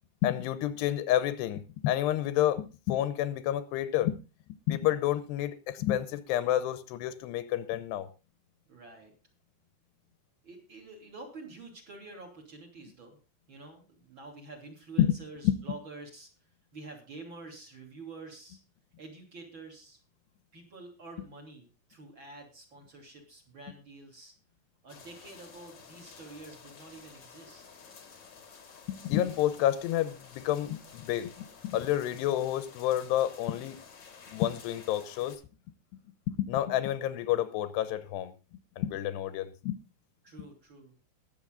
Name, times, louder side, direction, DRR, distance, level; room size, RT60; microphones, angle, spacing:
voice 1, 0.2-4.2 4.7-8.1 15.0-15.2 15.4-15.5 28.9-33.8 34.3-35.4 36.3-38.3 38.8-39.8, left 12 dB, 90° left, 3.1 m, -29 dB
voice 2, 8.7-9.1 10.4-13.2 13.5-16.3 16.7-18.6 19.0-20.0 20.5-24.3 24.8-27.6 40.2-40.9, right 3 dB, 30° right, 3.3 m, -48 dB
sound 1, 24.9-35.4, left 5 dB, 45° left, 1.6 m, -52 dB
20.5 x 8.1 x 3.8 m
omnidirectional pair, 4.7 m